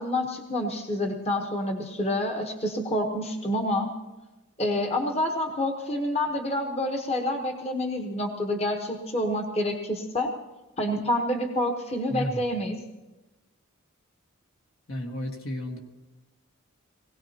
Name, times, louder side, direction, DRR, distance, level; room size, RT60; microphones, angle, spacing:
voice 1, 0.0-3.9 4.6-10.3 10.8-12.8, left 1 dB, 30° left, 2 dB, 1.1 m, -28 dB
voice 2, 12.1-12.4 14.9-15.8, left 1 dB, 65° left, 2 dB, 1.6 m, -32 dB
20.0 x 17.5 x 2.9 m, 1.1 s
head